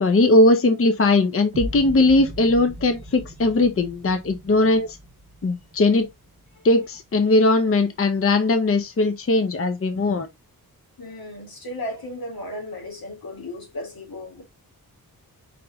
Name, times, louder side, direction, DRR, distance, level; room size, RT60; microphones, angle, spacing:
voice 1, 0.0-5.0 5.4-6.1 6.6-10.3, left 2 dB, 40° left, 0.6 m, -19 dB
sound 1, 1.5-7.5, right 1 dB, 35° right, 1.2 m, -39 dB
voice 2, 11.0-14.4, left 1 dB, 75° left, 2.1 m, -35 dB
4.9 x 3.0 x 3.3 m
wide cardioid pair, 85°, 36 cm